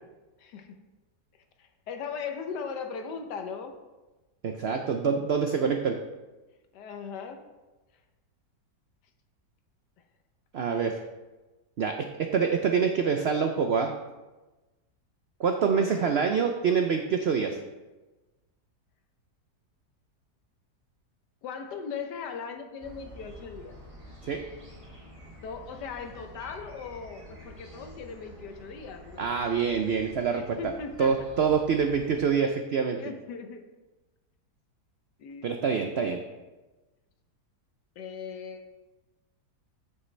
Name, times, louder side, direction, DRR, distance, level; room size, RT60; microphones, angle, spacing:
voice 1, 0.4-0.8 1.6-3.8 6.7-7.4 15.8-16.2 21.4-23.8 25.4-29.4 30.3-31.2 33.0-33.6 35.2-35.9 38.0-38.6, left 6 dB, 85° left, 6 dB, 1.5 m, -39 dB
voice 2, 4.4-6.0 10.5-11.0 11.8-14.0 15.4-17.6 24.2-24.4 29.2-30.7 31.0-33.0 35.4-36.2, right 6 dB, 80° right, 5 dB, 0.5 m, -26 dB
sound 1, 22.8-32.3, equal, 20° right, 1.4 m, -48 dB
8.4 x 7.7 x 3.3 m, 1.1 s
omnidirectional pair, 1.8 m